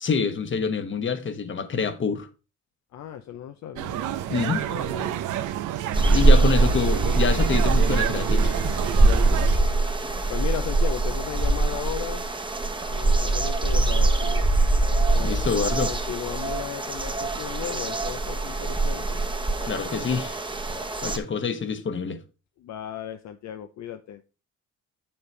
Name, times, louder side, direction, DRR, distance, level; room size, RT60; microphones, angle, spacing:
voice 1, 0.0-2.3 4.3-4.6 6.1-8.5 15.2-15.9 19.6-20.4 21.0-22.2, left 5 dB, 40° left, 1.1 m, -26 dB
voice 2, 2.9-5.2 6.2-6.4 9.2-12.2 12.9-14.5 15.1-15.4 15.9-19.2 22.6-24.2, left 10 dB, 65° left, 0.6 m, -36 dB
sound 1, 3.8-9.6, right 12 dB, 80° right, 0.7 m, -29 dB
sound 2, 5.9-21.2, right 2 dB, 15° right, 1.0 m, -23 dB
7.0 x 6.9 x 3.2 m
cardioid pair, 90°, 30 cm